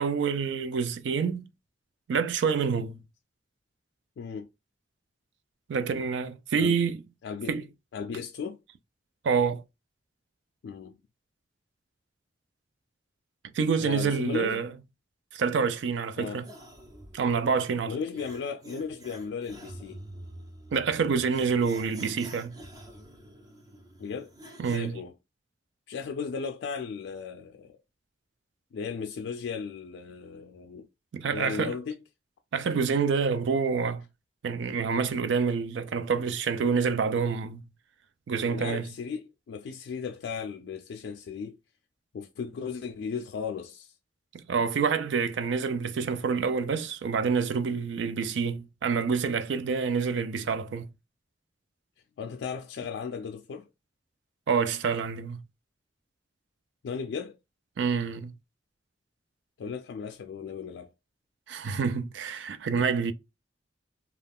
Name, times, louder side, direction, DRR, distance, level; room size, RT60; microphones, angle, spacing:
voice 1, 0.0-1.5 2.1-3.0 5.7-7.0 7.5-7.6 9.2-9.6 13.5-14.7 15.3-16.5 17.1-17.9 20.7-22.6 24.6-25.0 31.1-31.8 32.5-34.0 34.4-37.6 38.3-38.9 44.3-50.9 54.5-55.4 57.8-58.3 61.5-63.1, right 5 dB, 80° right, 0.4 m, -27 dB
voice 2, 4.2-4.5 6.6-6.8 7.2-7.6 7.9-8.6 10.6-11.0 13.8-14.6 16.2-16.4 17.9-20.0 24.0-24.3 24.6-25.1 25.9-27.8 28.7-30.9 31.2-32.0 38.5-41.5 42.1-43.9 52.2-53.7 56.8-57.4 59.6-60.9, left 6 dB, 80° left, 0.3 m, -36 dB
sound 1, 16.4-24.8, right 1 dB, 20° right, 0.5 m, -48 dB
2.3 x 2.2 x 3.4 m
head